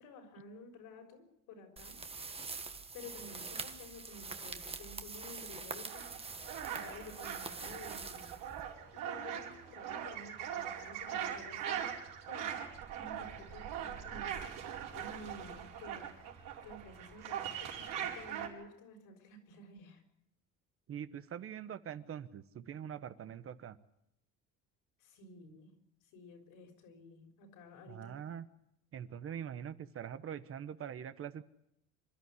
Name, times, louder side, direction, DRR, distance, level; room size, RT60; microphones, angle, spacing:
voice 1, 0.0-2.0 2.9-6.1 6.6-8.3 8.9-12.0 12.3-12.6 13.0-14.4 14.9-16.1 16.6-20.0 25.0-25.7 26.1-28.2, left 2 dB, 85° left, 3 dB, 6.3 m, -52 dB
sound 1, 1.8-8.9, right 4 dB, 15° right, 1.3 m, -45 dB
sound 2, 5.9-18.5, right 9 dB, 80° right, 5.1 m, -41 dB
voice 2, 20.9-23.8 27.9-28.5 28.9-31.4, right 9 dB, 40° right, 12 dB, 1.2 m, -43 dB
27.0 x 13.0 x 9.9 m, 0.79 s
cardioid pair, 135°, 33 cm